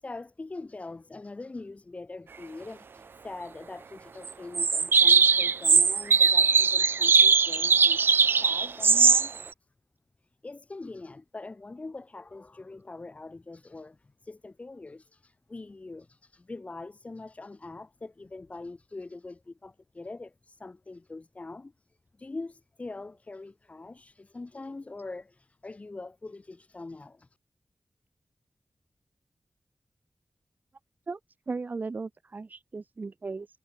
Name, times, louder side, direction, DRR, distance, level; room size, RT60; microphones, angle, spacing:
voice 1, 0.0-9.3 10.4-21.7 22.2-27.3, left 3 dB, 40° left, 6.8 m, -43 dB
sound 1, 4.3-4.4 4.6-9.4, right 5 dB, 80° right, 1.1 m, -20 dB
voice 2, 31.5-33.5, right 4 dB, 50° right, 3.2 m, -36 dB
wide cardioid pair, 95°, 4 cm